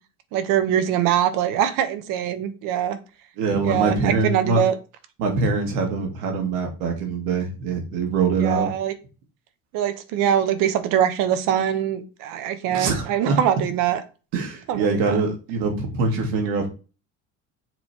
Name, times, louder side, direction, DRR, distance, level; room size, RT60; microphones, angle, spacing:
voice 1, 0.3-3.0 3.6-4.8 8.4-8.9 9.7-14.0 14.7-15.2, right 10 dB, 70° right, 10 dB, 1.1 m, -23 dB
voice 2, 3.4-4.6 5.2-8.7 12.7-13.3 14.3-16.7, right 4 dB, 90° right, 2 dB, 2.4 m, -23 dB
7.2 x 3.4 x 4.5 m, 0.32 s
cardioid pair, 170°, 34 cm